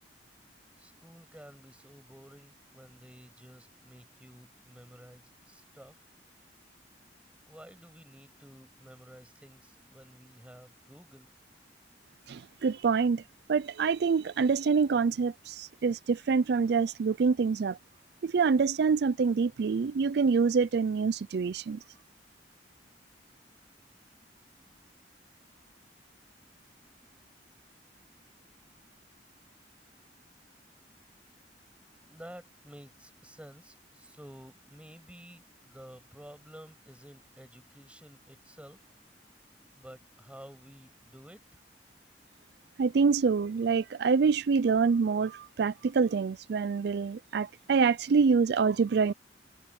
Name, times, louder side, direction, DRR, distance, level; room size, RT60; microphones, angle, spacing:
voice 1, 0.8-6.0 7.4-11.3 32.0-38.9 39.8-41.6, equal, 5° right, 6.4 m, -52 dB
voice 2, 12.3-13.2 13.5-17.8 18.2-21.8 42.8-49.1, right 5 dB, 65° right, 0.4 m, -26 dB
head